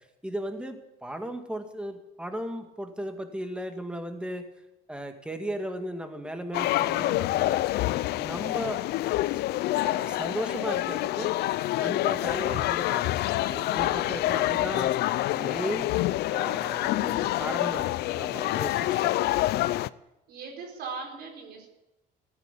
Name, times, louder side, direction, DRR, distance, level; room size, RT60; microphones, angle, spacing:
voice 1, 0.2-4.4 4.9-7.6 8.1-8.8 9.7-11.3 11.8-14.9 15.3-15.9 16.3-17.9 18.1-19.3, equal, 5° right, 6 dB, 2.1 m, -36 dB
sound 1, 6.5-19.9, left 16 dB, 75° left, 0.5 m, -27 dB
voice 2, 20.3-21.7, right 4 dB, 75° right, 2 dB, 4.5 m, -39 dB
15.0 x 10.0 x 8.4 m, 0.94 s
cardioid pair, 110°, 17 cm